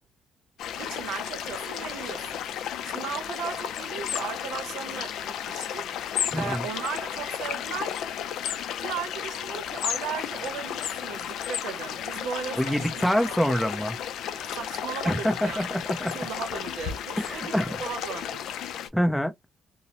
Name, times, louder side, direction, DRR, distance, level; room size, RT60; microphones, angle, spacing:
sound 1, 0.6-18.9, left 9 dB, 80° left, 0.4 m, -33 dB
voice 1, 0.8-8.0 8.8-13.5 14.3-15.7 16.0-18.5, right 7 dB, 85° right, 0.7 m, -37 dB
voice 2, 6.3-6.7 12.6-14.0 15.1-16.1 17.2-17.7 18.7-19.3, equal, ahead, 0.6 m, -26 dB
2.5 x 2.0 x 2.8 m
cardioid pair, 90°, 0 cm